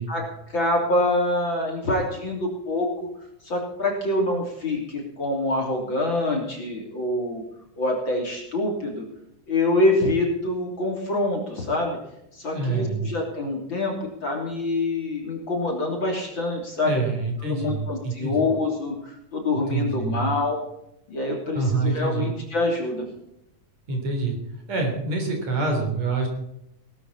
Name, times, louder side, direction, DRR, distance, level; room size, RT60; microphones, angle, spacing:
voice 1, 0.1-3.1 3.4-7.4 7.8-9.0 9.5-12.0 12.3-17.0 17.4-20.6 21.1-23.1, left 2 dB, 35° left, 0 dB, 3.5 m, -25 dB
voice 2, 12.5-13.1 16.8-18.4 19.7-20.3 21.5-22.3 23.9-24.4 24.7-26.3, right 3 dB, 50° right, 3 dB, 4.6 m, -26 dB
19.0 x 12.5 x 4.2 m, 0.80 s
omnidirectional pair, 3.9 m